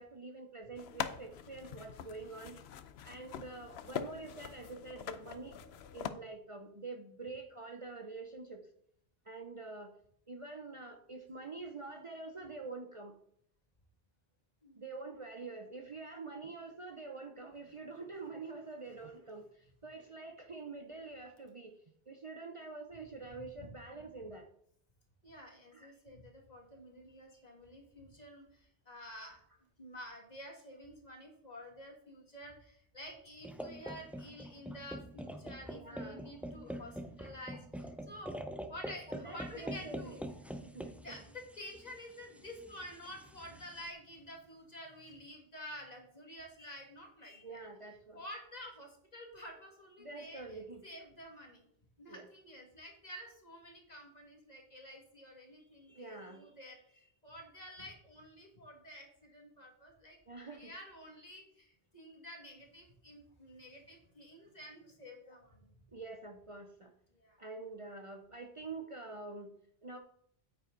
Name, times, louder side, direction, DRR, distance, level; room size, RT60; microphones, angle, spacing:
voice 1, 0.0-2.6 3.0-5.6 5.9-8.7 9.2-9.9 10.3-13.2 14.8-24.5 25.7-25.9 35.7-36.2 39.1-40.1 40.6-41.2 47.4-48.2 50.0-50.8 52.1-52.3 55.9-56.5 60.3-60.7 65.9-66.9 67.4-70.0, right 3 dB, 35° right, 4 dB, 0.8 m, -46 dB
sound 1, 0.8-6.1, left 8 dB, 90° left, 0.9 m, -43 dB
voice 2, 25.2-29.4 29.8-38.4 38.7-40.3 40.9-47.6 48.1-51.7 52.0-60.2 60.5-65.7 67.1-67.4, left 1 dB, 40° left, 1 dB, 2.4 m, -50 dB
sound 2, 33.4-43.9, equal, ahead, 0.6 m, -45 dB
9.3 x 9.0 x 3.9 m, 0.68 s
omnidirectional pair, 1.0 m